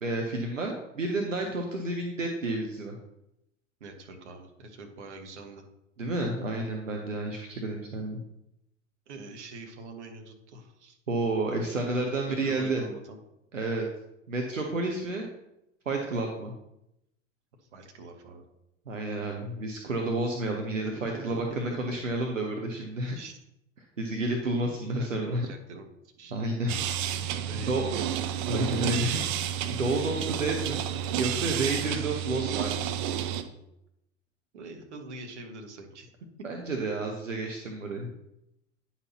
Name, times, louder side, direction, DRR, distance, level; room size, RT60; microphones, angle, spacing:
voice 1, 0.0-3.0 6.0-8.2 11.1-12.8 13.5-13.9 14.3-15.3 15.9-16.5 18.9-23.2 24.0-25.5 26.3-26.8 27.7-27.9 28.5-30.8 31.1-32.9 36.4-38.1, right 2 dB, 80° right, 2 dB, 0.9 m, -30 dB
voice 2, 3.8-5.6 9.1-11.0 11.5-13.2 17.7-18.4 20.9-21.9 23.1-23.4 25.0-25.9 26.2-26.3 27.4-28.1 30.1-30.2 31.8-31.9 34.5-36.1 36.6-36.7, right 2 dB, 65° right, 4 dB, 1.3 m, -44 dB
sound 1, 26.7-33.4, right 10 dB, 40° right, 0.6 m, -31 dB
9.5 x 5.7 x 2.9 m, 0.85 s
figure-of-eight pair, 85°, 38 cm